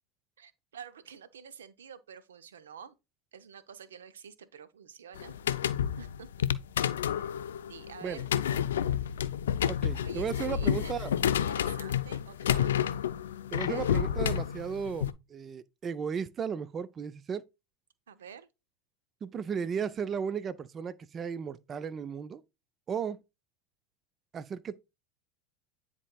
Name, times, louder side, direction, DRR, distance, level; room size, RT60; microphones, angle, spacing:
voice 1, 0.4-2.9 3.3-5.4 6.0-6.5 7.0-7.3 7.7-8.3 10.0-10.9 11.3-12.9 13.6-13.9 18.1-18.5, right 7 dB, 80° right, 0.6 m, -48 dB
sound 1, 5.2-15.1, left 9 dB, 80° left, 0.3 m, -30 dB
voice 2, 9.7-11.2 13.5-17.4 19.2-22.4 22.9-23.2 24.3-24.8, right 7 dB, 35° right, 0.4 m, -35 dB
9.8 x 4.2 x 2.3 m
hypercardioid pair, 85°, 0 cm